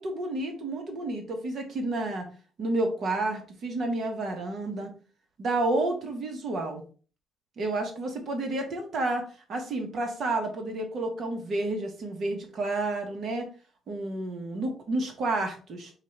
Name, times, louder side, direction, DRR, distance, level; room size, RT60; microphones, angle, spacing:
voice 1, 0.0-2.2 2.6-4.9 5.4-6.8 7.6-13.5 13.9-15.9, right 2 dB, 60° right, 4 dB, 1.3 m, -30 dB
4.7 x 2.6 x 4.4 m, 0.38 s
cardioid pair, 90°, 0 cm